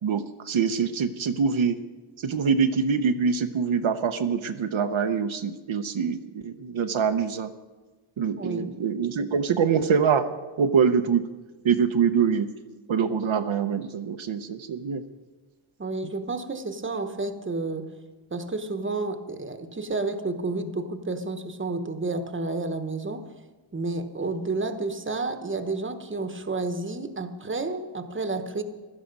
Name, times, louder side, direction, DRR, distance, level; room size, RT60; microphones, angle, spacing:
voice 1, 0.0-1.8 2.2-7.5 8.2-10.3 10.6-11.3 11.6-12.5 12.9-15.0 16.0-16.1, right 6 dB, 75° right, 8 dB, 0.8 m, -24 dB
voice 2, 8.4-8.7 15.8-17.9 18.3-23.3 23.7-28.6, right 3 dB, 25° right, 8 dB, 1.0 m, -30 dB
16.0 x 12.5 x 5.3 m, 1.2 s
wide cardioid pair, 125°, 49 cm